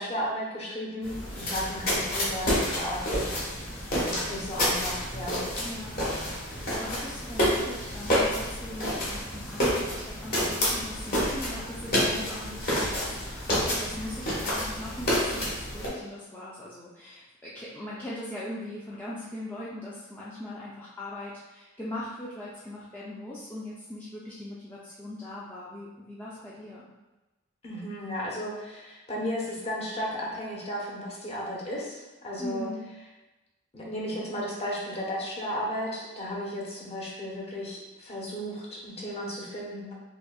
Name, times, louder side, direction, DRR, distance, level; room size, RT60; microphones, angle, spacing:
voice 1, 0.0-3.5 4.0-5.4 27.6-32.7 33.7-39.9, equal, 30° left, -3 dB, 0.8 m, -34 dB
sound 1, 1.0-15.9, equal, 45° left, 1.2 m, -29 dB
voice 2, 5.6-26.9 32.4-32.9, left 1 dB, 10° left, -8 dB, 0.4 m, -40 dB
5.2 x 2.2 x 2.4 m, 1.1 s
head